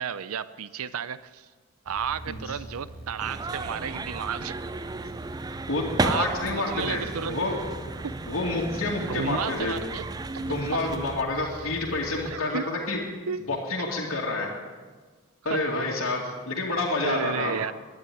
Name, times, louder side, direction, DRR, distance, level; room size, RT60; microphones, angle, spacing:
voice 1, 0.0-1.5 1.9-4.5 6.0-7.4 8.0-8.1 9.0-10.0 12.3-12.6 13.3-13.5 15.5-15.6 17.0-17.7, right 7 dB, 85° right, 16 dB, 0.5 m, -32 dB
sound 1, 1.8-12.3, right 1 dB, 40° right, 3.4 m, -43 dB
sound 2, 3.2-11.2, right 3 dB, 15° right, 0.3 m, -34 dB
voice 2, 5.7-7.6 8.3-9.7 10.4-13.0 13.5-14.5 15.4-17.6, left 2 dB, 70° left, -4 dB, 2.4 m, -28 dB
12.0 x 10.5 x 9.9 m, 1.5 s
head